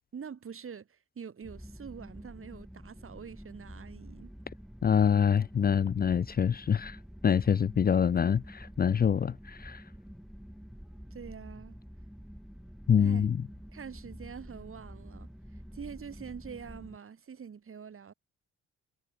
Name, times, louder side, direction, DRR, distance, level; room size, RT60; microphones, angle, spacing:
voice 1, 0.1-4.3 11.1-11.8 13.0-13.3 13.7-18.1, right 7 dB, 45° right, 5.7 m, -45 dB
sound 1, 1.4-17.0, equal, ahead, 2.2 m, -48 dB
voice 2, 4.8-7.0 7.2-9.8 12.9-13.4, left 7 dB, 30° left, 0.5 m, -25 dB
cardioid pair, 90°, 30 cm